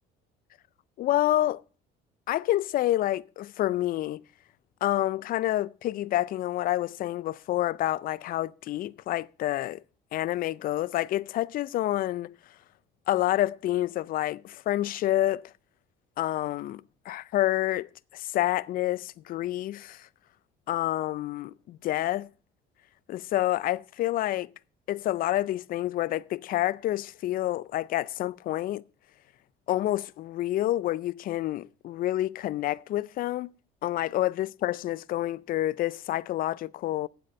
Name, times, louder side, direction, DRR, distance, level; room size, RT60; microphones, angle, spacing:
voice 1, 1.0-1.6 2.3-4.2 4.8-9.8 10.1-12.3 13.1-15.5 16.2-20.1 20.7-22.3 23.1-24.5 24.9-28.8 29.7-33.5 33.8-37.1, left 14 dB, 50° left, 0.4 m, -28 dB
9.1 x 7.6 x 6.4 m
cardioid pair, 110°, 18 cm